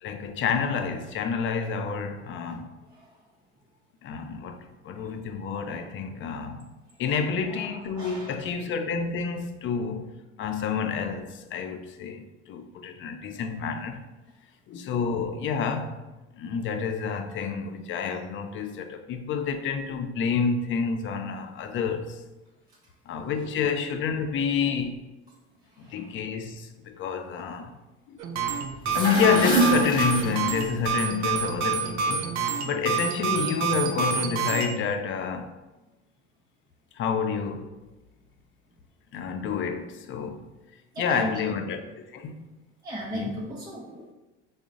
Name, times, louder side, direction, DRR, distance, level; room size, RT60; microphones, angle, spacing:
voice 1, 0.0-2.7 4.0-6.7 7.0-10.1 10.4-14.0 14.7-16.0 16.3-22.2 23.1-25.0 25.8-27.8 28.1-28.2 28.9-35.5 36.9-37.7 39.1-40.5 41.0-42.6 43.1-43.3, left 6 dB, 35° left, 0.4 m, -29 dB
voice 2, 7.0-8.5 24.6-24.7 25.7-26.2 40.9-41.4 42.8-44.1, equal, 10° right, 0.6 m, -38 dB
sound 1, 28.2-34.7, right 6 dB, 55° right, 0.6 m, -28 dB
sound 2, 28.7-30.9, right 1 dB, 15° left, 1.1 m, -25 dB
3.8 x 2.1 x 3.6 m
hypercardioid pair, 85°, 34 cm